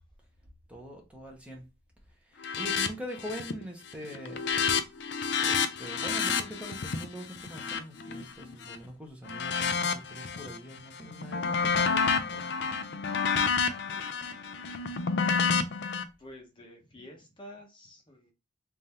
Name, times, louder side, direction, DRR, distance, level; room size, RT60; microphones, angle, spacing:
voice 1, 0.7-1.6 2.3-4.7 5.4-12.7, equal, 5° right, 0.9 m, -43 dB
sound 1, 2.4-2.9 3.2-3.6 3.9-8.8 9.3-10.6 11.0-16.0, left 5 dB, 60° left, 0.5 m, -29 dB
voice 2, 13.9-14.8 16.2-18.3, left 1 dB, 25° left, 0.9 m, -51 dB
3.5 x 2.6 x 4.2 m
head